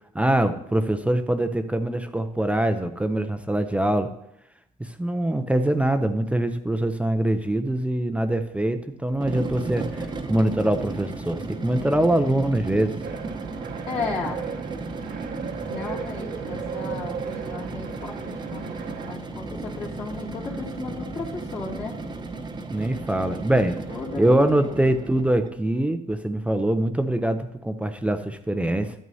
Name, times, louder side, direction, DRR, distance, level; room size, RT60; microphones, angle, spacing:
voice 1, 0.1-4.1 4.8-13.0 22.7-23.8 24.2-28.9, right 1 dB, 5° right, 8 dB, 0.5 m, -23 dB
sound 1, 9.1-25.5, right 3 dB, 25° right, 0.9 m, -35 dB
sound 2, 13.0-19.1, right 7 dB, 65° right, 0.9 m, -36 dB
voice 2, 13.9-14.5 15.7-22.0 23.9-24.8, left 4 dB, 50° left, -9 dB, 2.5 m, -35 dB
12.0 x 9.4 x 2.7 m, 0.80 s
cardioid pair, 110°, 17 cm